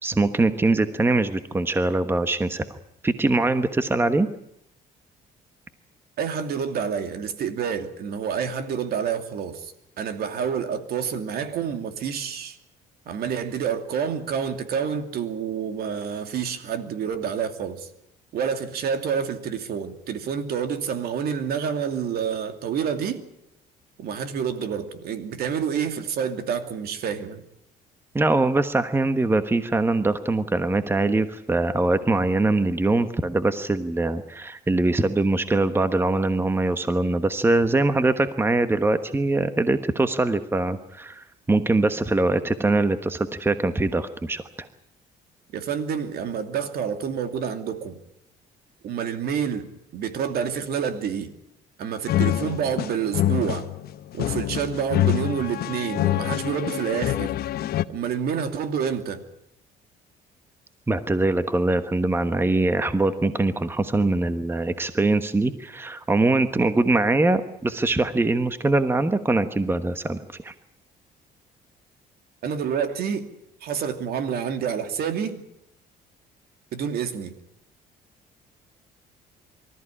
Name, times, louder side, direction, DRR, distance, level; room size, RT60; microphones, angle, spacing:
voice 1, 0.0-2.6 3.0-4.3 28.1-44.7 60.9-70.5, right 2 dB, 15° right, 1.2 m, -22 dB
voice 2, 6.2-12.6 13.1-17.9 18.3-23.2 24.0-27.4 45.5-48.0 48.8-51.3 51.8-53.7 54.1-57.3 57.9-59.2 72.4-73.3 73.6-75.4 76.7-77.3, right 7 dB, 65° right, 2.7 m, -28 dB
sound 1, 52.1-57.8, left 13 dB, 65° left, 1.0 m, -25 dB
25.0 x 14.0 x 10.0 m
cardioid pair, 110°, 17 cm